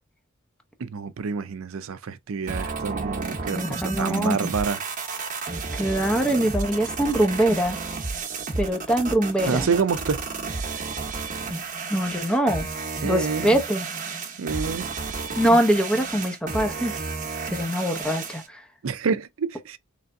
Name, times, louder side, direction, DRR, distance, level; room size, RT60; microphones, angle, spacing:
voice 1, 0.8-4.8 9.5-10.2 13.0-13.5 14.4-14.9 18.8-19.8, right 5 dB, 75° right, 0.5 m, -27 dB
sound 1, 2.5-18.5, right 4 dB, 40° right, 1.0 m, -32 dB
voice 2, 3.6-4.4 5.7-7.8 8.6-9.7 11.9-12.7 13.0-13.9 15.3-17.0 17.5-18.6, right 1 dB, 5° left, 0.7 m, -23 dB
3.9 x 3.3 x 2.6 m
head